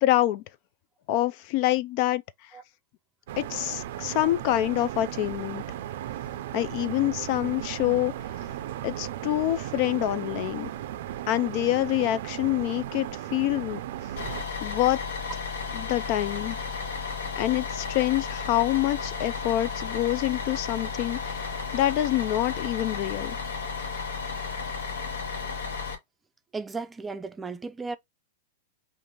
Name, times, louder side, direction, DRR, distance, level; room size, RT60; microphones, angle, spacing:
voice 1, 0.0-0.4 1.1-2.2 3.4-5.6 6.5-8.1 8.8-10.7 11.3-13.8 14.2-15.0 15.7-16.6 17.4-23.4, left 15 dB, 50° left, 0.4 m, -26 dB
sound 1, 3.3-14.4, right 12 dB, 65° right, 0.5 m, -36 dB
Bus, 14.2-25.9, left 5 dB, 85° left, 1.2 m, -33 dB
voice 2, 26.5-28.0, right 4 dB, 10° right, 0.5 m, -35 dB
5.1 x 2.6 x 2.9 m
hypercardioid pair, 130°, 0 cm